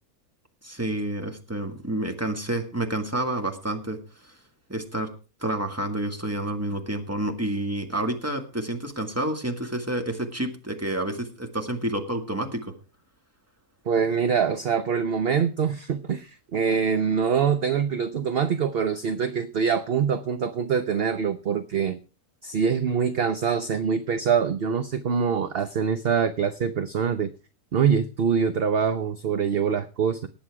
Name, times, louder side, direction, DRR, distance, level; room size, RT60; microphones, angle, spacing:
voice 1, 0.6-4.0 4.7-5.1 5.4-12.7, right 1 dB, 10° right, 5 dB, 1.9 m, -29 dB
voice 2, 13.9-22.0 22.4-27.3 27.7-30.3, right 6 dB, 50° right, 11 dB, 0.9 m, -24 dB
19.0 x 7.7 x 4.8 m, 0.33 s
omnidirectional pair, 1.6 m